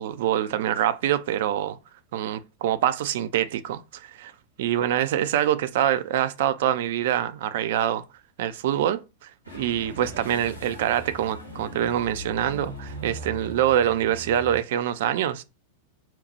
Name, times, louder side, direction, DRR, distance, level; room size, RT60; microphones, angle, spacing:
voice 1, 0.0-1.8 2.1-4.3 4.6-8.0 8.4-15.4, right 11 dB, 55° right, 0.3 m, -25 dB
sound 1, 9.4-14.6, equal, 90° right, 1.3 m, -40 dB
2.9 x 2.1 x 4.0 m
figure-of-eight pair, 90°, 0 cm